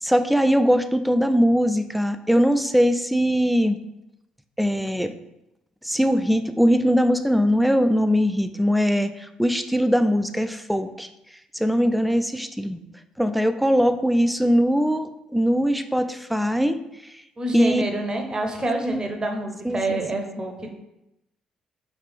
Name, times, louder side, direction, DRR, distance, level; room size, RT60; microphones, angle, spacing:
voice 1, 0.0-3.8 4.6-5.1 5.8-11.1 11.5-12.8 13.2-17.1 17.5-17.8 18.8-19.0 19.6-20.0, equal, ahead, 9 dB, 0.3 m, -21 dB
voice 2, 17.4-20.7, right 1 dB, 25° right, 3 dB, 0.7 m, -27 dB
3.2 x 3.1 x 3.4 m, 0.88 s
figure-of-eight pair, 45°, 3 cm